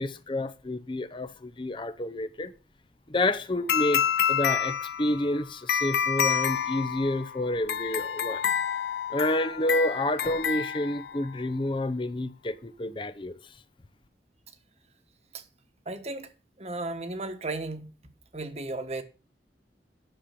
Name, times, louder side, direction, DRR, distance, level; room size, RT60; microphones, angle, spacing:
voice 1, 0.0-2.5 3.1-4.0 4.3-8.4 9.1-13.4, left 1 dB, 30° left, 0.7 m, -29 dB
sound 1, 3.7-11.4, left 8 dB, 65° left, 0.4 m, -28 dB
voice 2, 15.8-16.3 16.6-17.9 18.3-19.0, right 2 dB, 35° right, 1.3 m, -34 dB
10.5 x 6.7 x 5.7 m
head